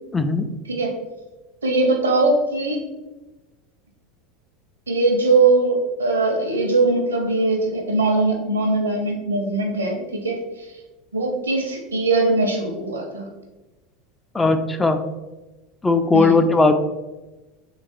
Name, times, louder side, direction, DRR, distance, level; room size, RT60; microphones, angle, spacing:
voice 1, 0.1-0.5 14.3-15.0 15.8-16.7, left 3 dB, 15° left, 7 dB, 0.3 m, -17 dB
voice 2, 1.6-2.8 4.9-10.7 11.1-13.3 16.1-16.4, right 3 dB, 85° right, 1 dB, 0.7 m, -21 dB
3.4 x 3.1 x 2.5 m, 1.1 s
hypercardioid pair, 80°, 0 cm